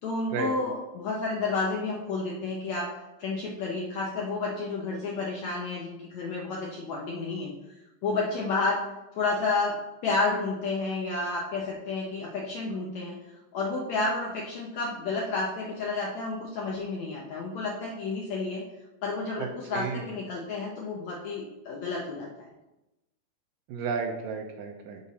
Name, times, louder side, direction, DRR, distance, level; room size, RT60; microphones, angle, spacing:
voice 1, 0.0-2.9 3.2-7.5 8.0-8.8 9.1-13.2 13.5-18.6 19.0-22.4, left 3 dB, 75° left, -2 dB, 1.7 m, -31 dB
voice 2, 19.4-20.1 23.7-25.0, right 5 dB, 80° right, 3 dB, 2.1 m, -33 dB
6.6 x 5.4 x 4.1 m, 0.97 s
omnidirectional pair, 4.2 m